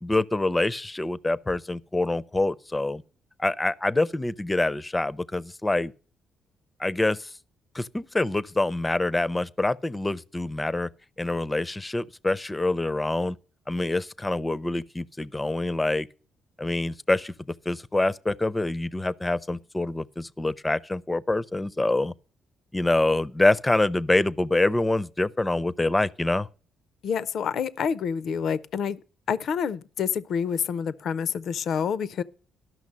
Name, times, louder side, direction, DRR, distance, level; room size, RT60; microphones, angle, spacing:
voice 1, 0.0-3.0 3.4-5.9 6.8-7.3 7.7-10.9 11.2-13.4 13.7-16.1 16.6-17.3 17.7-22.1 22.7-26.5, left 2 dB, 15° left, 0.5 m, -26 dB
voice 2, 27.0-29.0 29.3-32.2, left 7 dB, 65° left, 0.5 m, -28 dB
12.5 x 6.0 x 7.3 m
cardioid pair, 90°, 0 cm